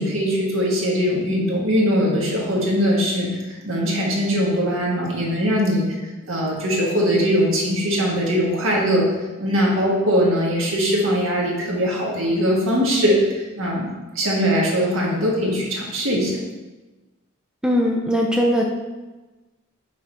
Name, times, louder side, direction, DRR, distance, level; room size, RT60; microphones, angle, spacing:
voice 1, 0.0-6.0 6.3-9.0 9.4-13.9 14.1-16.4, equal, 70° right, -3 dB, 1.5 m, -21 dB
voice 2, 17.6-18.6, equal, 5° right, -1 dB, 0.4 m, -19 dB
6.0 x 3.8 x 4.3 m, 1.2 s
head